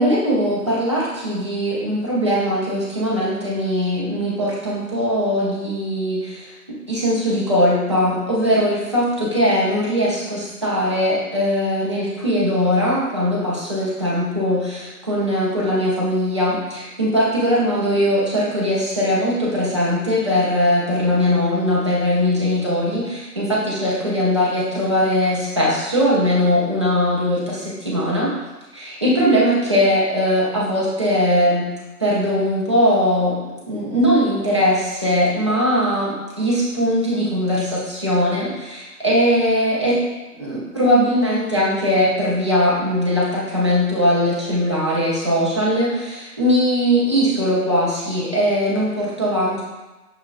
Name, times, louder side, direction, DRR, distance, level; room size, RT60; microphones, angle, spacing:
voice 1, 0.0-28.3 28.7-31.7 32.0-33.4 33.7-40.1 40.3-49.6, equal, 20° right, -8 dB, 0.4 m, -20 dB
5.7 x 2.8 x 2.3 m, 1.1 s
figure-of-eight pair, 135°, 49 cm